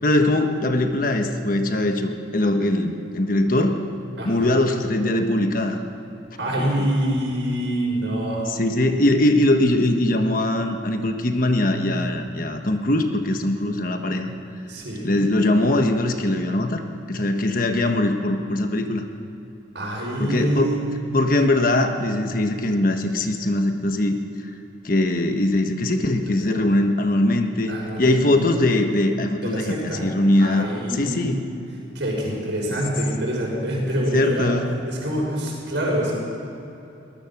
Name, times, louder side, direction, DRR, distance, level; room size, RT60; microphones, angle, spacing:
voice 1, 0.0-3.8 4.2-5.8 6.6-6.9 8.5-14.3 15.0-16.8 17.1-19.0 20.2-20.7 21.1-24.2 24.8-29.7 30.0-31.4 32.7-32.8 34.1-34.7, left 1 dB, 45° left, 5 dB, 1.3 m, -21 dB
voice 2, 4.2-4.5 6.4-8.5 14.7-15.1 19.7-20.9 26.3-26.5 27.7-28.3 29.4-30.1 30.4-31.4 31.9-34.5 34.8-36.1, right 1 dB, 65° right, -2 dB, 6.4 m, -26 dB
22.5 x 19.5 x 6.0 m, 2.9 s
head